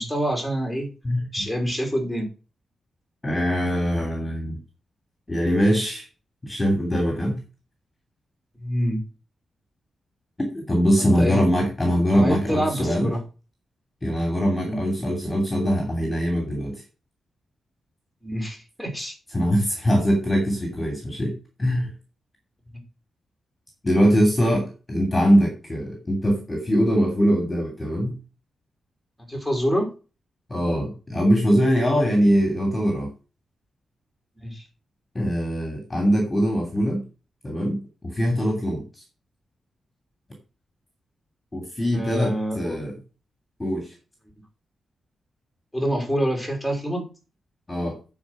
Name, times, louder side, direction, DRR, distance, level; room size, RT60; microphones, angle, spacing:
voice 1, 0.0-0.9 1.3-2.3 8.6-9.0 11.0-11.4 12.1-13.2 14.6-14.8 18.2-19.2 29.3-29.9 34.4-34.6 41.9-42.8 45.7-47.1, equal, ahead, 2 dB, 3.5 m, -26 dB
voice 2, 3.2-4.6 5.3-6.0 6.4-7.4 10.4-13.1 14.0-16.8 19.3-21.3 21.6-21.9 23.8-28.2 30.5-33.1 35.1-37.0 37.4-38.8 41.5-42.9 43.6-43.9 47.7-48.0, equal, 15° left, 3 dB, 2.8 m, -22 dB
10.5 x 4.9 x 6.1 m, 0.32 s
wide cardioid pair, 145°, 0 cm